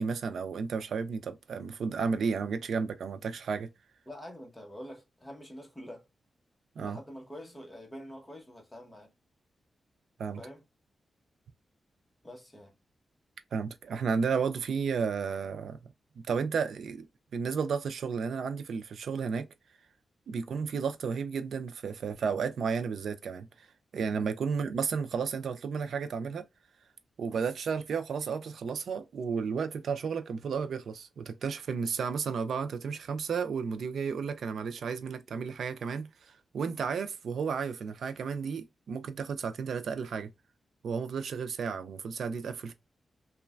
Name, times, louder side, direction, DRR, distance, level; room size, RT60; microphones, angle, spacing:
voice 1, 0.0-3.7 6.8-7.0 10.2-10.4 13.5-15.8 16.2-17.1 17.3-19.5 20.3-23.7 23.9-26.5 27.2-40.3 40.8-42.7, right 5 dB, 80° right, 0.3 m, -33 dB
voice 2, 4.1-6.1 6.8-9.1 10.4-10.6 12.2-12.7 24.0-24.2, equal, 10° left, 0.9 m, -46 dB
3.1 x 2.1 x 2.3 m
wide cardioid pair, 100°, 0 cm